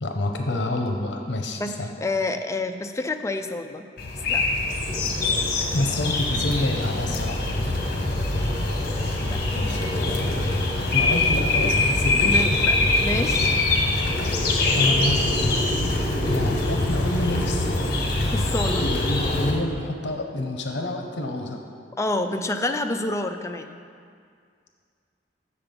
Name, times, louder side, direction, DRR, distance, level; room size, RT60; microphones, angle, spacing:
voice 1, 0.0-1.9 5.7-7.4 9.5-9.9 10.9-12.7 14.7-15.2 16.3-17.9 18.8-21.6, left 1 dB, 75° left, 3 dB, 0.8 m, -28 dB
voice 2, 1.6-3.9 4.3-4.4 8.9-10.4 12.2-12.7 13.0-13.6 18.3-18.8 22.0-23.7, left 2 dB, 15° left, 6 dB, 0.4 m, -29 dB
sound 1, 4.0-19.5, left 2 dB, 60° left, 1.1 m, -23 dB
7.4 x 6.8 x 5.2 m, 2.2 s
head